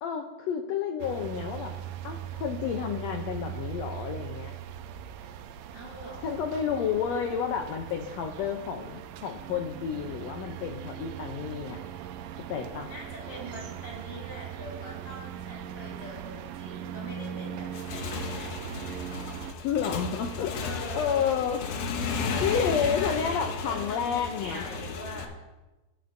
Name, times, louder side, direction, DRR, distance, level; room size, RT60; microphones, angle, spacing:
voice 1, 0.0-1.7 2.0-4.6 6.2-11.8 12.5-12.9 19.6-21.7 22.4-24.7, left 7 dB, 90° left, 4 dB, 1.5 m, -30 dB
sound 1, 1.0-19.5, right 10 dB, 85° right, 2.2 m, -40 dB
voice 2, 5.7-6.4 12.9-18.6 20.5-21.3 22.2-25.3, equal, 45° left, -4 dB, 5.6 m, -42 dB
Motorcycle / Engine, 17.6-25.3, left 4 dB, 70° left, 1.7 m, -34 dB
18.0 x 8.7 x 2.6 m, 1.1 s
omnidirectional pair, 3.9 m